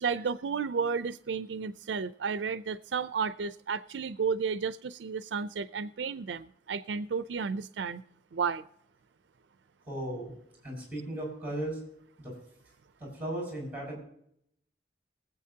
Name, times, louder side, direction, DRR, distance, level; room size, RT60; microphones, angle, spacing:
voice 1, 0.0-8.0 8.3-8.6, right 5 dB, 80° right, 0.5 m, -32 dB
voice 2, 9.9-10.3 10.6-11.8 12.2-12.3 13.0-14.0, right 1 dB, 10° right, 6.0 m, -36 dB
23.5 x 8.0 x 2.8 m
head